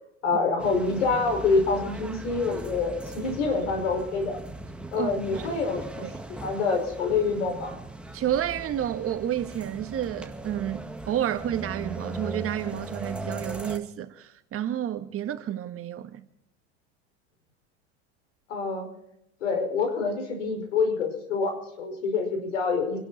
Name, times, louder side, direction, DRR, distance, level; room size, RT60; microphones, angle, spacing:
voice 1, 0.2-4.4 4.9-6.1 6.4-7.8 18.5-18.9 19.4-23.0, left 4 dB, 85° left, 5.3 m, -26 dB
sound 1, 0.6-13.8, right 2 dB, 5° right, 1.8 m, -39 dB
voice 2, 4.9-5.5 6.0-6.1 8.1-16.2, right 11 dB, 40° right, 1.6 m, -30 dB
28.5 x 11.5 x 4.2 m
hypercardioid pair, 95°, 36 cm